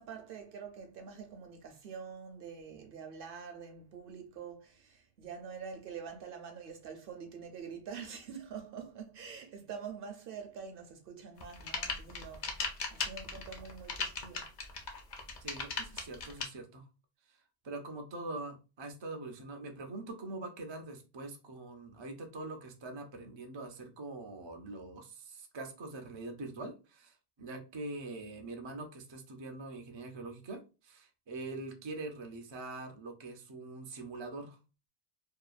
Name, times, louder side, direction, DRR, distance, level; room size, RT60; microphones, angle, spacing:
voice 1, 0.0-14.5, right 6 dB, 65° right, 0.8 m, -46 dB
sound 1, 11.4-16.4, left 4 dB, 55° left, 0.6 m, -37 dB
voice 2, 15.4-16.9 17.6-34.6, right 2 dB, 50° right, 0.3 m, -43 dB
2.8 x 2.2 x 2.3 m
omnidirectional pair, 1.1 m